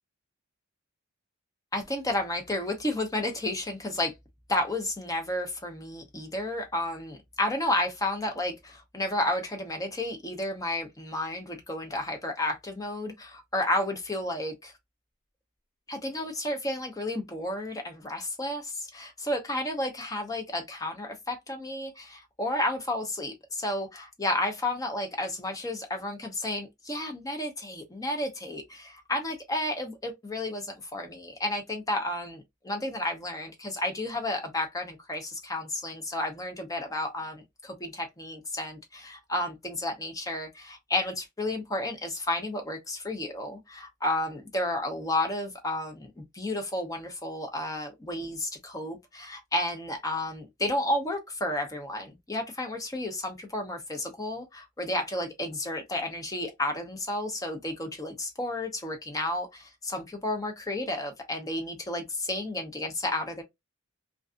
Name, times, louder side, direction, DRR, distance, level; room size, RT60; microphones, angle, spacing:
voice 1, 1.7-4.1 4.5-14.7 15.9-63.4, left 1 dB, 15° left, 0.6 m, -32 dB
2.4 x 2.3 x 2.4 m
head